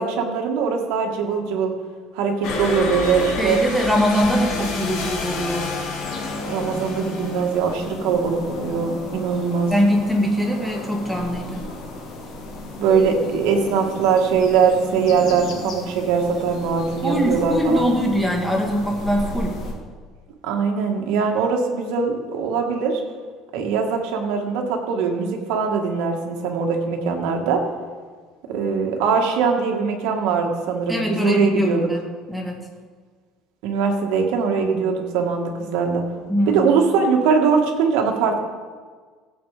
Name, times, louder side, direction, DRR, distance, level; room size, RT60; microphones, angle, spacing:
voice 1, 0.0-1.7 2.1-3.6 6.4-9.7 12.8-17.9 20.4-23.0 23.5-27.6 28.5-31.9 33.6-36.0 36.5-38.4, right 5 dB, 80° right, 2 dB, 2.1 m, -21 dB
sound 1, 2.4-8.0, left 3 dB, 65° left, 2.4 m, -29 dB
voice 2, 3.4-5.7 9.7-11.7 17.0-19.6 30.9-32.0 32.3-32.6 36.3-36.7, equal, ahead, 0 dB, 1.9 m, -22 dB
sound 2, 6.0-19.7, left 1 dB, 45° left, 2.7 m, -35 dB
16.5 x 8.2 x 5.2 m, 1.5 s
cardioid pair, 160°, 0 cm